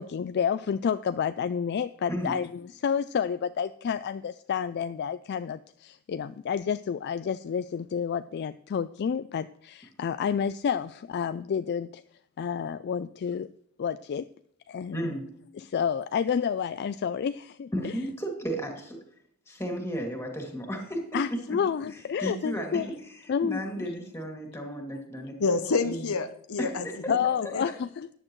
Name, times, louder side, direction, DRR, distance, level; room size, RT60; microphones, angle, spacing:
voice 1, 0.0-12.0 12.4-13.5 13.8-14.3 14.7-15.1 15.5-17.9 21.1-22.9 23.3-23.9 24.9-25.3 27.1-28.1, left 7 dB, 50° left, 12 dB, 0.3 m, -30 dB
voice 2, 14.9-15.3 17.7-19.0 19.5-21.0 21.5-21.6 22.2-25.3 25.8-26.1 26.6-27.1, equal, 10° left, 2 dB, 2.4 m, -34 dB
voice 3, 25.4-27.2 27.5-27.6, left 4 dB, 70° left, 9 dB, 0.7 m, -28 dB
14.0 x 9.9 x 3.1 m, 0.69 s
head